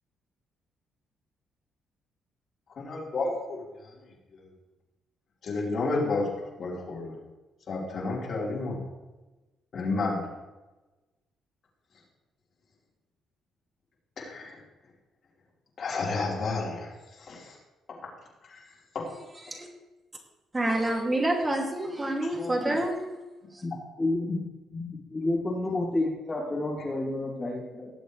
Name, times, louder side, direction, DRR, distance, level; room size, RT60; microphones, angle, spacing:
voice 1, 2.8-3.6 4.3-4.4 5.4-6.3 6.6-7.2 7.7-8.8 9.7-10.3 14.2-14.6 15.8-16.9 17.2-17.6 18.5-18.6 18.9-19.1 24.7-24.9, left 3 dB, 55° left, -4 dB, 4.4 m, -31 dB
voice 2, 20.5-23.6, right 1 dB, 20° right, 1 dB, 2.6 m, -28 dB
voice 3, 22.3-22.8 23.6-24.3 25.1-27.9, left 2 dB, 30° left, -3 dB, 3.0 m, -30 dB
19.0 x 7.9 x 3.3 m, 1.1 s
cardioid pair, 90°, 0 cm